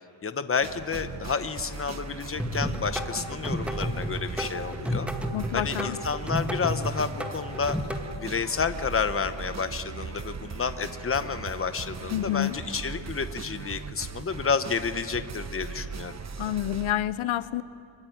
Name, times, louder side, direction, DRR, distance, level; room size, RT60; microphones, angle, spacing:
voice 1, 0.2-5.1 5.5-7.8 8.2-16.2, left 5 dB, 25° left, 10 dB, 1.0 m, -30 dB
sound 1, 0.6-16.9, right 5 dB, 35° right, 1.0 m, -39 dB
sound 2, 2.4-8.0, equal, 5° right, 1.7 m, -31 dB
voice 2, 5.3-6.0 12.1-12.6 16.4-17.6, left 12 dB, 75° left, 15 dB, 0.7 m, -28 dB
24.5 x 23.5 x 9.5 m, 2.5 s
wide cardioid pair, 140°, 48 cm